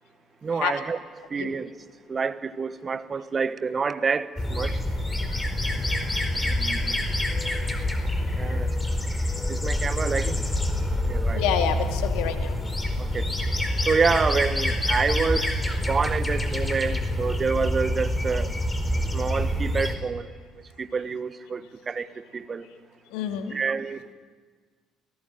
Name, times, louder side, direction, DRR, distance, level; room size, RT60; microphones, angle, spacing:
voice 1, 0.4-1.0 1.3-1.7 2.1-4.8 6.4-7.0 8.4-8.7 9.5-11.6 13.0-13.3 13.9-18.5 19.1-20.3 20.8-22.7 23.5-24.1, right 5 dB, 35° right, 12 dB, 1.3 m, -28 dB
sound 1, 4.4-20.0, left 1 dB, 15° left, 4.5 m, -26 dB
voice 2, 11.3-12.6 23.1-23.6, left 9 dB, 70° left, 6 dB, 2.4 m, -28 dB
29.0 x 19.0 x 9.3 m, 1.5 s
hypercardioid pair, 55°, 0 cm